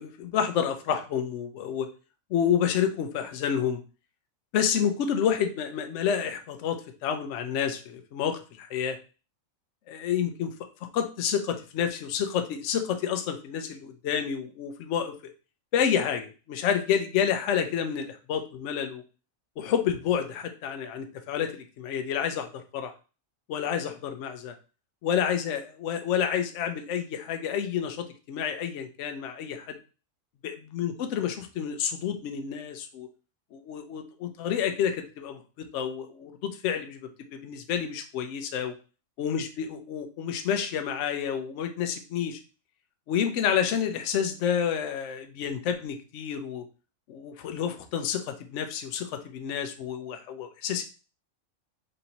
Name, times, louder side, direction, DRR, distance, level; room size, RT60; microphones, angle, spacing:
voice 1, 0.0-1.9 2.3-3.8 4.5-9.0 9.9-10.5 10.9-15.3 15.7-19.0 19.6-22.9 23.5-24.5 25.0-29.8 30.4-33.1 33.5-38.7 39.2-42.4 43.1-46.6 47.1-50.8, left 8 dB, 65° left, 6 dB, 0.8 m, -29 dB
4.1 x 2.6 x 2.8 m, 0.34 s
omnidirectional pair, 1.4 m